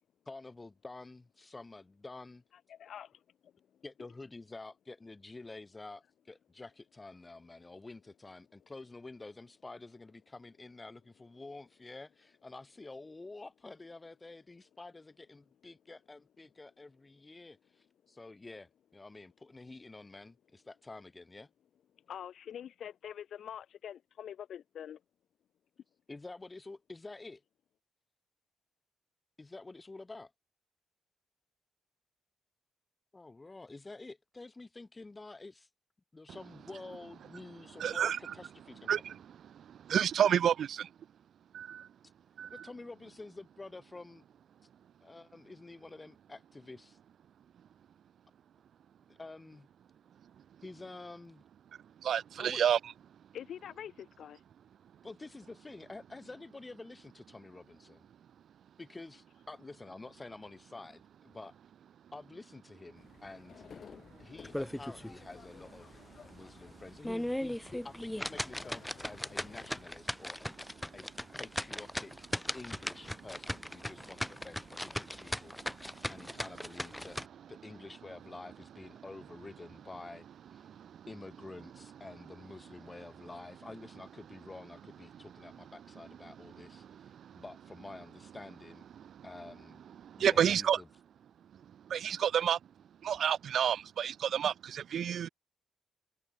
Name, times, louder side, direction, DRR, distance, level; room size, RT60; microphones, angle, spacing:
voice 1, 0.3-2.4 3.8-21.5 26.1-27.4 29.4-30.3 33.1-35.7 36.1-39.0 42.5-44.2 45.0-47.0 49.1-49.7 50.6-51.4 52.4-52.6 55.0-58.1 58.8-61.5 62.1-63.6 64.2-70.5 70.9-71.1 71.3-72.1 72.5-80.3 80.5-80.7 81.1-88.8 89.2-89.8 90.2-90.9, left 3 dB, 25° left, 7.0 m, -49 dB
voice 2, 2.7-3.5 22.1-25.0 53.3-54.4, left 9 dB, 70° left, 2.3 m, -45 dB
voice 3, 37.8-38.2 38.9-39.2 39.5-40.9 41.5-41.9 42.4-42.6 52.0-52.8 75.6-76.1 80.6-81.0 86.9-87.4 89.0-89.2 90.0-90.8 91.9-92.6 93.0-95.3, right 9 dB, 65° right, 0.8 m, -30 dB
sound 1, 63.0-69.9, left 6 dB, 50° left, 5.1 m, -55 dB
sound 2, 64.4-65.2 65.6-65.7 66.2-66.3 66.9-77.3, left 1 dB, 5° left, 0.3 m, -38 dB
cardioid pair, 75°, 0 cm